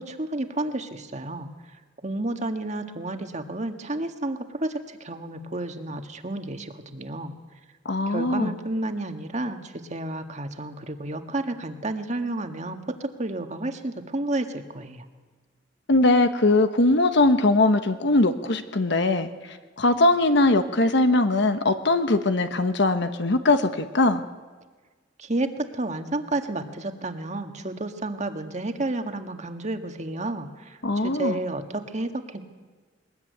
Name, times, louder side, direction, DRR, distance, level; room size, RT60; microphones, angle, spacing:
voice 1, 0.0-1.5 2.0-7.3 8.1-15.1 25.2-30.8 31.0-32.4, right 2 dB, 35° right, 6 dB, 1.7 m, -31 dB
voice 2, 7.8-8.5 15.9-19.3 19.8-24.2 30.8-31.4, left 2 dB, 60° left, 9 dB, 1.2 m, -21 dB
22.0 x 20.5 x 9.4 m, 1.4 s
head